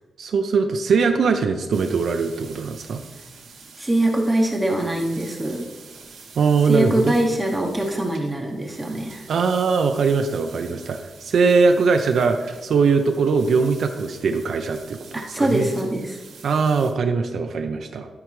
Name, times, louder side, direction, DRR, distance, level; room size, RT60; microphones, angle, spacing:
voice 1, 0.2-3.0 6.4-7.1 9.3-15.0 15.4-15.7 16.4-18.1, right 5 dB, 60° right, 5 dB, 0.5 m, -21 dB
sound 1, 1.7-16.9, right 5 dB, 90° right, 2.2 m, -46 dB
voice 2, 3.8-5.7 6.7-9.2 15.1-16.2, right 1 dB, 10° right, 1 dB, 0.8 m, -23 dB
13.0 x 4.6 x 3.1 m, 1.3 s
wide cardioid pair, 150°, 0 cm